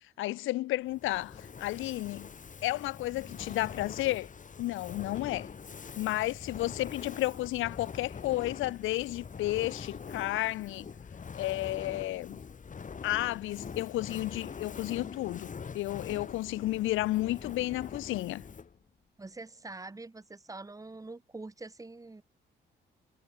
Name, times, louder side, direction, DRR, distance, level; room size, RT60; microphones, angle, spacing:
voice 1, 0.2-2.3 2.6-4.3 4.6-5.5 6.0-10.9 11.3-12.4 13.0-18.4, left 17 dB, 85° left, 0.6 m, -32 dB
Fire, 0.9-18.8, left 6 dB, 40° left, 4.7 m, -44 dB
voice 2, 19.2-22.2, right 3 dB, 15° right, 2.1 m, -45 dB
cardioid pair, 90°, 20 cm